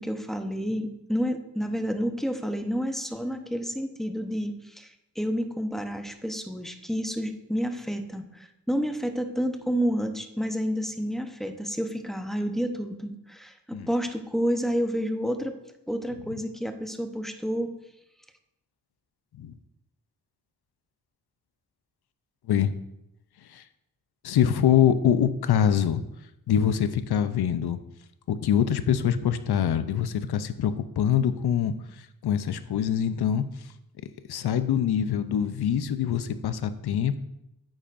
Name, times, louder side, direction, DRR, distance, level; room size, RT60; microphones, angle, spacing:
voice 1, 0.0-15.6 15.9-17.7, equal, ahead, 6 dB, 0.8 m, -30 dB
voice 2, 24.2-26.0 26.5-27.8 28.3-33.4 34.3-37.2, left 9 dB, 75° left, 11 dB, 0.7 m, -24 dB
9.0 x 8.9 x 2.6 m, 0.87 s
cardioid pair, 80°, 39 cm